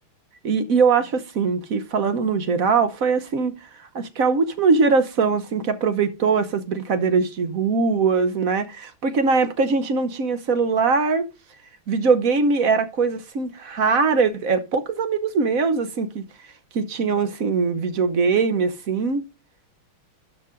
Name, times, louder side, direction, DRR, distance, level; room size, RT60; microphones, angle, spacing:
voice 1, 0.4-3.5 3.9-11.3 11.9-16.2 16.7-19.2, right 4 dB, 50° right, 1.1 m, -21 dB
12.5 x 6.6 x 3.8 m
omnidirectional pair, 2.3 m